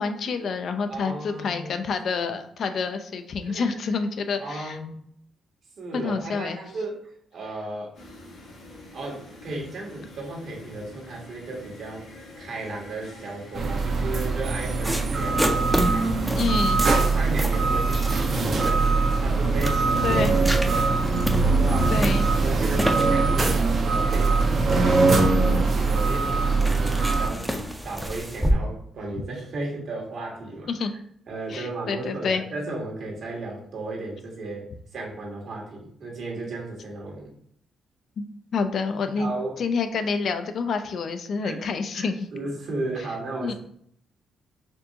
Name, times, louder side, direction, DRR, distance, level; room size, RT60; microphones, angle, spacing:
voice 1, 0.0-4.8 5.9-6.6 16.4-16.8 20.0-20.3 21.7-22.3 30.7-30.9 31.5-32.4 38.2-38.3 38.5-39.3 39.6-42.3 43.4-43.5, left 5 dB, 65° left, 8 dB, 0.4 m, -28 dB
voice 2, 0.9-1.8 3.4-3.8 4.4-5.0 5.8-7.9 8.9-12.0 12.4-16.4 16.9-20.9 21.5-22.0 22.4-24.5 24.8-30.7 31.3-37.3 39.2-39.5 41.4-41.6 41.9-43.5, right 2 dB, 70° right, -2 dB, 1.4 m, -35 dB
sound 1, 7.9-27.7, equal, 85° left, 1.2 m, -43 dB
sound 2, 13.5-27.3, right 3 dB, 50° right, 0.7 m, -22 dB
sound 3, 14.8-28.5, equal, 5° right, 0.5 m, -31 dB
4.4 x 2.8 x 2.7 m, 0.67 s
cardioid pair, 80°, 0 cm